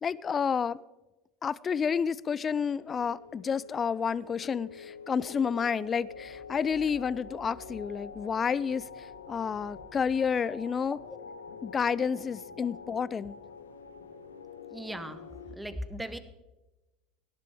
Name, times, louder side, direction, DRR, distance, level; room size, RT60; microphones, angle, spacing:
voice 1, 0.0-0.8 1.4-11.0 11.6-13.4, left 6 dB, 30° left, 21 dB, 0.4 m, -30 dB
sound 1, 2.2-15.6, left 5 dB, 85° left, 0.8 m, -47 dB
sound 2, 5.6-14.4, equal, 65° left, 2.4 m, -58 dB
voice 2, 14.7-16.2, right 1 dB, 5° right, 12 dB, 1.2 m, -39 dB
17.5 x 10.5 x 3.6 m, 1.1 s
hypercardioid pair, 75°, 0 cm